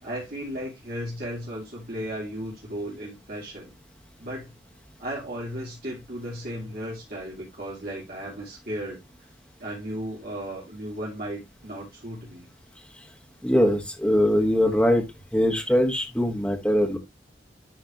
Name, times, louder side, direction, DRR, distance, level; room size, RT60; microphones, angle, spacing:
voice 1, 0.0-3.7 4.2-4.5 5.0-9.0 9.6-12.5, equal, 55° right, 2.7 m, -35 dB
voice 2, 13.4-15.0 15.3-17.0, equal, 5° left, 1.6 m, -22 dB
12.0 x 4.1 x 3.0 m
head